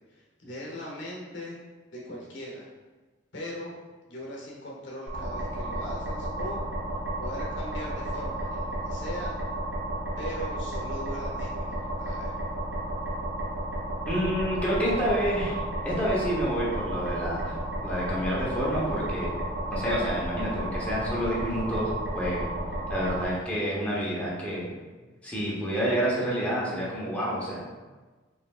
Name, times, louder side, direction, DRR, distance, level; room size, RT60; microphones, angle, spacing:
voice 1, 0.1-1.6 1.9-2.7 3.3-3.7 4.1-6.6 7.2-9.4 10.2-12.3, equal, 65° left, -3 dB, 0.9 m, -39 dB
sound 1, 5.1-23.2, right 1 dB, 80° right, 1.4 m, -32 dB
voice 2, 14.0-19.3 19.7-22.4 22.9-24.8 25.2-27.6, equal, 5° left, -6 dB, 0.9 m, -29 dB
4.9 x 3.1 x 2.4 m, 1.3 s
head